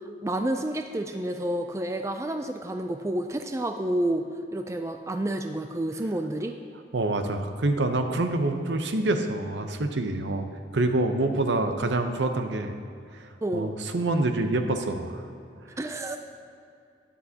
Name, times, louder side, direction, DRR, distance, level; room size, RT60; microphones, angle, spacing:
voice 1, 0.2-4.2 4.5-6.6 13.4-13.7 15.8-16.2, right 1 dB, 15° right, 6 dB, 0.3 m, -29 dB
voice 2, 6.9-10.4 10.7-12.8 13.5-15.2, right 2 dB, 75° right, 6 dB, 0.7 m, -26 dB
12.5 x 10.0 x 2.8 m, 2.5 s
head